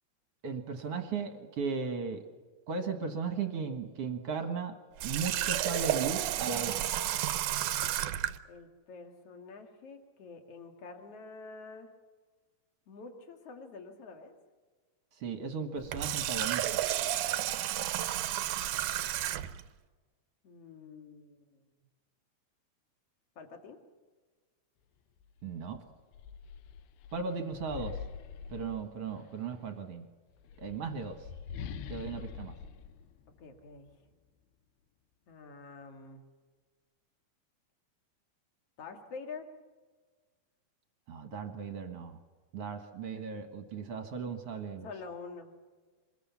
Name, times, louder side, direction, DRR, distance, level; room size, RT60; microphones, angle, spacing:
voice 1, 0.4-2.2 2.7-4.7 5.0-6.9 15.2-16.8 25.4-25.8 27.1-28.0 28.5-30.1 30.6-31.3 31.9-32.6 41.1-42.2 42.5-44.9, right 5 dB, 55° right, 6 dB, 1.8 m, -36 dB
Water tap faucet, 5.0-8.4 15.8-19.6, right 13 dB, 75° right, 1.9 m, -32 dB
voice 2, 8.5-11.9 12.9-14.3 20.4-21.6 23.4-23.8 33.4-33.9 35.3-36.2 38.8-39.5 44.8-45.5, left 4 dB, 45° left, 4 dB, 2.8 m, -47 dB
sound 1, 25.2-25.3 25.7-29.4 30.3-33.9, left 7 dB, 80° left, 2.7 m, -45 dB
25.0 x 21.0 x 7.1 m, 1.4 s
omnidirectional pair, 4.4 m